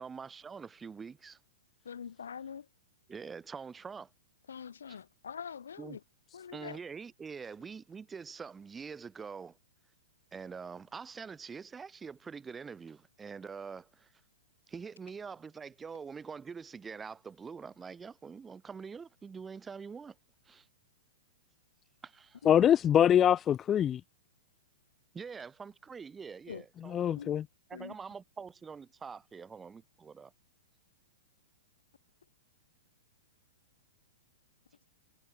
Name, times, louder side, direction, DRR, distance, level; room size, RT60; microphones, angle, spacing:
voice 1, 0.0-1.4 3.1-4.1 4.9-5.0 5.8-6.0 6.5-9.6 10.3-14.1 14.7-20.2 20.5-20.7 22.0-22.4 25.1-27.0 27.7-30.3, right 5 dB, 15° right, 2.5 m, -45 dB
voice 2, 1.8-2.7 4.5-6.0 6.3-6.8 22.4-22.7 26.5-26.6 27.1-27.3 27.7-28.0, left 7 dB, 70° left, 0.7 m, -44 dB
voice 3, 22.5-24.0 26.9-27.4, left 10 dB, 25° left, 0.4 m, -24 dB
figure-of-eight pair, 105°, 0 cm